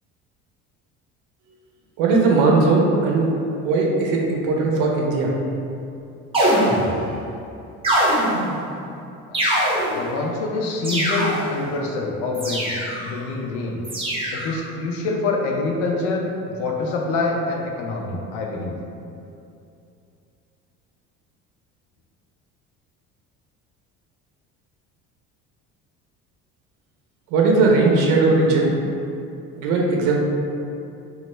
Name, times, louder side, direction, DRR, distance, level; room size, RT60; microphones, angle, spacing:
voice 1, 2.0-3.3 3.6-5.3 27.3-28.7 29.6-30.2, right 3 dB, 80° right, -1 dB, 0.6 m, -18 dB
sound 1, 6.3-7.1 7.8-8.6 9.3-10.1 10.8-11.6 12.3-13.1 13.8-14.5, right 1 dB, 20° right, 0.9 m, -22 dB
voice 2, 9.8-13.8 14.3-18.8, left 3 dB, 90° left, 0 dB, 0.5 m, -26 dB
2.9 x 2.3 x 3.2 m, 2.6 s
cardioid pair, 115°, 30 cm